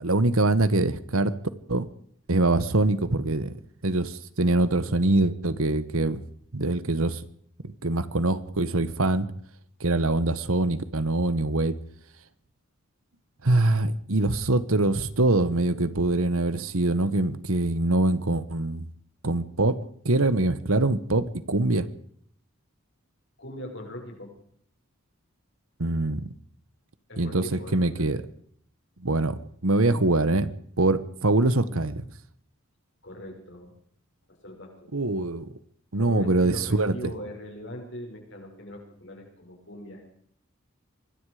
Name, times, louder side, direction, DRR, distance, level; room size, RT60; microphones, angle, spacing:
voice 1, 0.0-1.3 1.7-1.9 2.3-6.2 6.5-7.2 7.6-9.3 9.8-11.8 13.4-18.9 19.2-19.7 20.0-21.9 25.8-26.2 27.2-28.2 29.0-29.3 29.6-30.5 30.8-32.0 34.9-35.5 35.9-36.9, right 2 dB, 75° right, 14 dB, 1.4 m, -24 dB
voice 2, 23.4-24.3 27.1-28.2 33.0-33.7 34.4-34.9 36.0-40.1, left 1 dB, 55° left, 2 dB, 6.6 m, -40 dB
25.0 x 20.5 x 5.1 m, 0.62 s
head